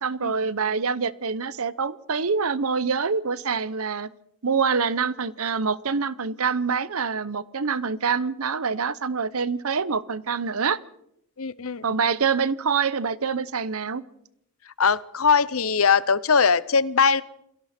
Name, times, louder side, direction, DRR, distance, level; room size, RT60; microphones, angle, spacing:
voice 1, 0.0-4.1 4.4-10.8 11.8-14.0, right 5 dB, 70° right, 0.8 m, -25 dB
voice 2, 11.4-11.8 14.8-17.2, left 5 dB, 65° left, 0.8 m, -21 dB
28.5 x 21.5 x 4.4 m
head